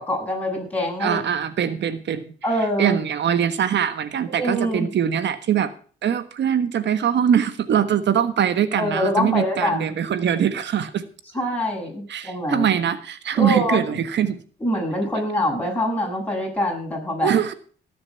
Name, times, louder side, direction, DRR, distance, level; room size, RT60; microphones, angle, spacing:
voice 1, 0.0-1.2 2.4-3.0 4.4-4.9 8.7-10.0 11.3-12.7 13.4-13.8 14.6-17.3, left 1 dB, 5° left, -2 dB, 6.8 m, -24 dB
voice 2, 1.0-2.3 2.8-5.7 6.0-11.1 12.1-14.4 17.2-17.5, right 9 dB, 65° right, 12 dB, 1.4 m, -22 dB
18.5 x 7.0 x 5.8 m, 0.41 s
cardioid pair, 90°, 20 cm